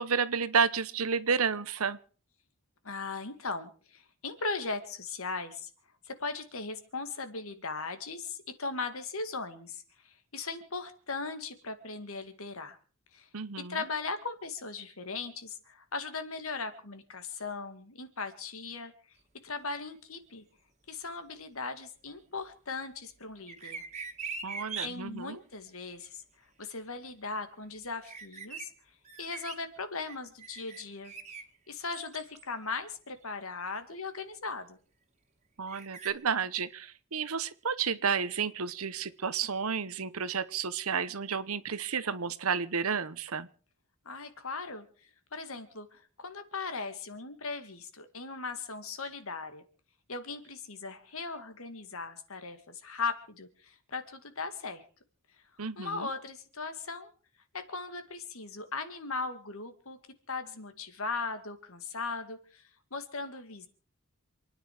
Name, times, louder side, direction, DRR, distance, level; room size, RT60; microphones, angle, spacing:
voice 1, 0.0-2.0 13.3-13.8 24.4-25.4 35.6-43.5 55.6-56.1, right 6 dB, 75° right, 16 dB, 1.0 m, -31 dB
voice 2, 2.8-5.7 6.1-12.8 13.1-13.3 13.6-18.9 19.4-20.4 20.9-23.8 24.8-26.2 26.6-28.7 29.2-31.1 31.7-34.8 44.1-44.9 45.3-49.6 50.1-54.8 55.8-57.1 57.5-60.0 60.3-63.7, left 4 dB, 70° left, 9 dB, 2.3 m, -38 dB
sound 1, 23.5-24.9 28.0-28.7 29.1-29.6 30.1-31.4 31.9-32.5 33.2-33.3 35.7-36.1, right 5 dB, 30° right, 2.1 m, -41 dB
28.0 x 10.0 x 5.0 m, 0.41 s
head